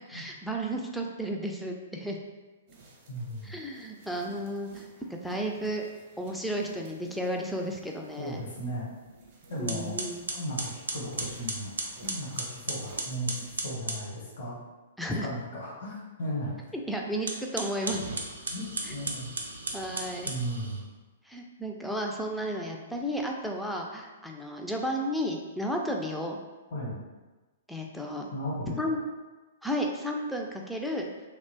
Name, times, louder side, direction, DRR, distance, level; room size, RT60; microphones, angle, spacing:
voice 1, 0.1-2.2 3.4-5.8 6.2-8.4 9.6-10.2 15.0-15.3 16.9-18.0 18.8-18.9 19.7-20.3 21.3-26.4 27.7-28.3 28.8-29.0 29.6-31.1, equal, ahead, 0 dB, 0.3 m, -33 dB
sound 1, 2.7-13.7, right 2 dB, 45° right, 0.7 m, -53 dB
voice 2, 3.1-3.5 8.2-8.9 9.5-10.0 10.3-11.7 12.0-14.5 15.2-16.5 18.5-19.3 20.2-20.8 26.7-27.0 28.3-28.8, equal, 70° left, -4 dB, 0.9 m, -36 dB
sound 2, 9.1-9.3 9.7-14.1 17.1-20.8, right 2 dB, 80° right, 0.4 m, -35 dB
2.8 x 2.1 x 2.7 m, 1.2 s
figure-of-eight pair, 115°, 0 cm